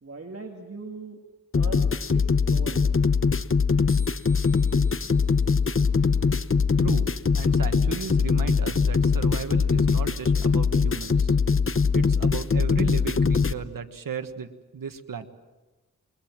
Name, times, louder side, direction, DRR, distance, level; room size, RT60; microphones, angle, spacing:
voice 1, 0.0-1.2 1.5-2.9, right 3 dB, 45° right, 2 dB, 2.3 m, -40 dB
sound 1, 1.5-13.5, left 5 dB, 40° left, 0.9 m, -22 dB
sound 2, 3.9-7.0, left 2 dB, 10° right, 4.3 m, -53 dB
voice 2, 6.8-7.1 7.3-11.3 11.9-15.3, right 6 dB, 85° right, 8 dB, 1.5 m, -35 dB
28.0 x 22.5 x 7.5 m, 1.2 s
cardioid pair, 55°, 33 cm